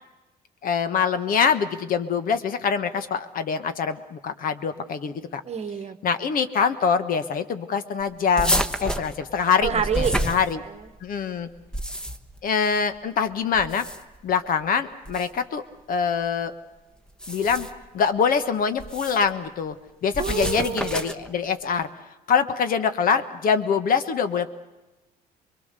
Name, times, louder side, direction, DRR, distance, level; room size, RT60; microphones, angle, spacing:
voice 1, 0.6-5.4 6.0-10.6 11.0-11.5 12.4-13.8 14.2-15.6 15.9-16.5 17.3-17.7 17.9-19.8 20.0-21.9 22.3-24.5, left 6 dB, 55° left, 11 dB, 1.4 m, -24 dB
voice 2, 5.4-6.0 9.6-10.9 20.2-21.1, right 7 dB, 40° right, 11 dB, 1.2 m, -29 dB
sound 1, 8.4-11.0 11.5-12.4 13.5-14.2 15.0-15.3 17.1-17.8 18.8-19.3 20.1-21.3, equal, 5° left, 1.1 m, -29 dB
24.5 x 22.5 x 6.8 m, 1.1 s
cardioid pair, 110°, 17 cm